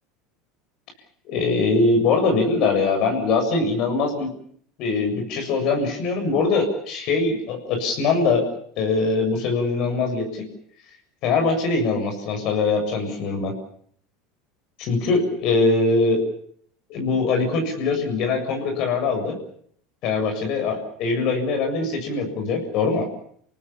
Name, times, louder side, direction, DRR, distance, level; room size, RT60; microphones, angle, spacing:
voice 1, 1.3-4.3 4.8-8.5 8.8-10.4 11.2-13.5 14.8-16.2 16.9-19.4 20.0-23.1, left 3 dB, 60° left, 4 dB, 7.5 m, -22 dB
29.0 x 18.5 x 7.3 m, 0.63 s
hypercardioid pair, 90°, 0 cm